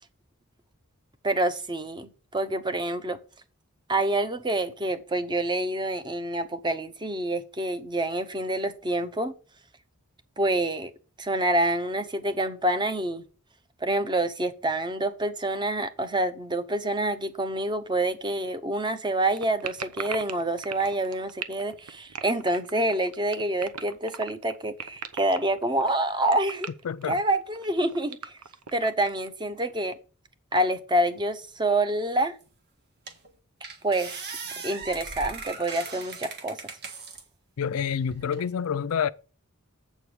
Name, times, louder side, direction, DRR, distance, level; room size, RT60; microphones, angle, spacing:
voice 1, 1.2-3.2 3.9-9.3 10.4-10.9 11.2-13.2 13.8-26.7 27.0-28.3 28.7-29.9 30.5-32.4 33.8-34.1 34.6-36.6, right 1 dB, 20° right, 0.8 m, -27 dB
sound 1, 19.3-29.3, right 7 dB, 90° right, 0.8 m, -38 dB
voice 2, 26.8-27.2 37.6-39.1, left 7 dB, 70° left, 0.4 m, -28 dB
sound 2, 32.4-32.5 33.1-33.3 33.6-37.2 37.8-38.4, right 4 dB, 50° right, 1.5 m, -39 dB
7.8 x 4.6 x 6.9 m
head